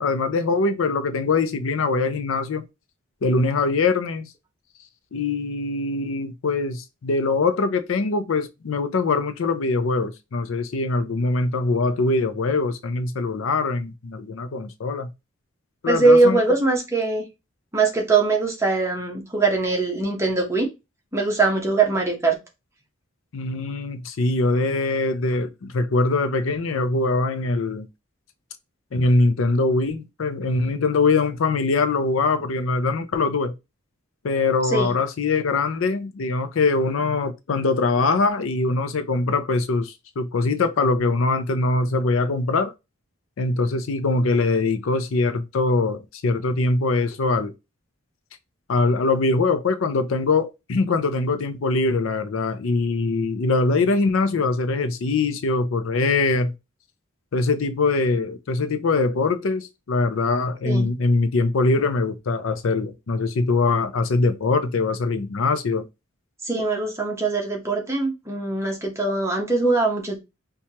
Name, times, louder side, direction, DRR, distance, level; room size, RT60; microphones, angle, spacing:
voice 1, 0.0-2.7 3.2-4.3 5.1-15.1 15.8-16.4 23.3-27.9 28.9-33.5 34.2-42.7 43.4-47.5 48.7-56.5 57.3-65.9, left 3 dB, 70° left, 0.5 m, -22 dB
voice 2, 15.9-17.2 17.7-20.7 21.1-22.4 34.7-35.0 60.7-60.9 66.4-70.2, right 3 dB, 15° right, 0.8 m, -21 dB
4.4 x 2.3 x 2.8 m
head